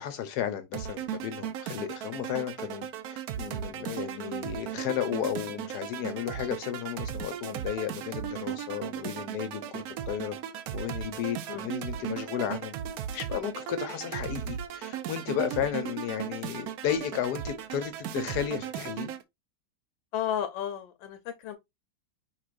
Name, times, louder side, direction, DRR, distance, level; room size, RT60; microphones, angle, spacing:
voice 1, 0.0-10.4 10.7-12.7 13.1-19.1, left 10 dB, 65° left, 1.2 m, -33 dB
sound 1, 0.7-19.2, right 9 dB, 75° right, 0.8 m, -36 dB
voice 2, 20.1-21.6, left 10 dB, 85° left, 1.4 m, -34 dB
4.8 x 3.7 x 2.5 m
omnidirectional pair, 2.1 m